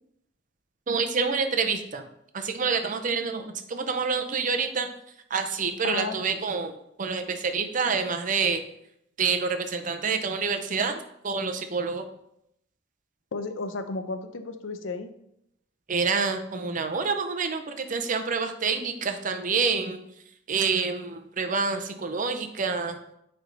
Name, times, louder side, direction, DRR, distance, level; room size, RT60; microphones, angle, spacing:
voice 1, 0.9-2.0 2.3-4.9 5.3-8.6 9.2-12.1 15.9-20.0 20.5-23.0, right 5 dB, 40° right, 7 dB, 0.6 m, -27 dB
voice 2, 5.8-6.2 13.3-15.1, left 3 dB, 80° left, 8 dB, 0.6 m, -33 dB
9.2 x 3.4 x 3.8 m, 0.77 s
head